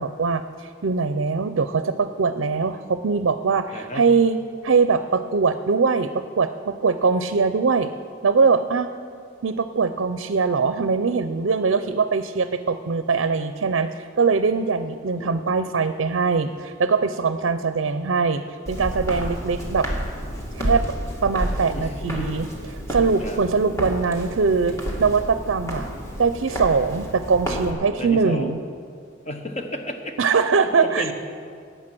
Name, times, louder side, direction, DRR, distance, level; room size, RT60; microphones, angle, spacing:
voice 1, 0.0-4.4 4.6-7.9 8.2-8.9 9.4-19.9 20.5-20.8 21.2-22.5 22.9-24.7 25.0-25.9 26.2-28.6 30.2-31.1, right 4 dB, 70° right, 10 dB, 0.5 m, -22 dB
voice 2, 3.7-4.1 15.2-15.4 21.7-22.4 23.2-23.4 28.0-28.6 29.2-30.2 30.6-31.1, left 1 dB, 35° left, 5 dB, 1.2 m, -32 dB
Walk footsteps, 18.7-27.7, equal, 15° left, 2.1 m, -30 dB
19.0 x 8.0 x 6.1 m, 2.3 s
head